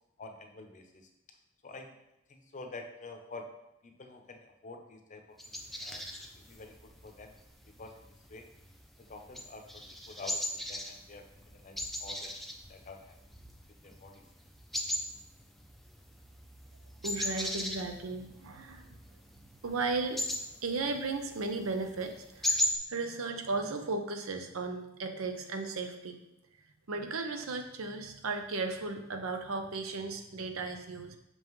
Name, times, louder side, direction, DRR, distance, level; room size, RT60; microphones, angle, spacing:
voice 1, 0.2-1.1 1.6-2.0 2.3-3.5 3.8-6.0 6.4-7.3 7.6-8.5 9.0-13.4 13.7-14.2, left 3 dB, 40° left, 4 dB, 0.7 m, -49 dB
sound 1, 5.4-22.8, left 1 dB, ahead, 0.4 m, -39 dB
voice 2, 17.0-19.0 19.6-20.3 20.6-22.6 22.9-26.2 26.9-31.2, right 3 dB, 85° right, 6 dB, 0.7 m, -35 dB
5.9 x 5.4 x 3.1 m, 0.87 s
head